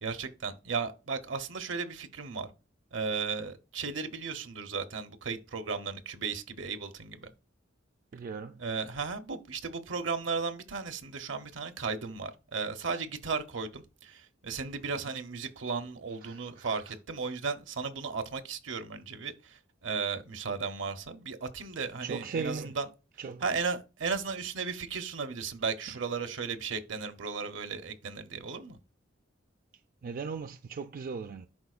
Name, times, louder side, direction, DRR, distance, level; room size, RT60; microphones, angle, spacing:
voice 1, 0.0-2.5 2.9-7.3 8.6-22.9 23.4-28.8, right 5 dB, 75° right, 0.8 m, -35 dB
voice 2, 8.1-8.6 16.2-16.9 22.0-22.8 23.2-23.4 25.9-26.0 30.0-31.5, right 5 dB, 50° right, 0.3 m, -38 dB
10.5 x 4.3 x 2.4 m
head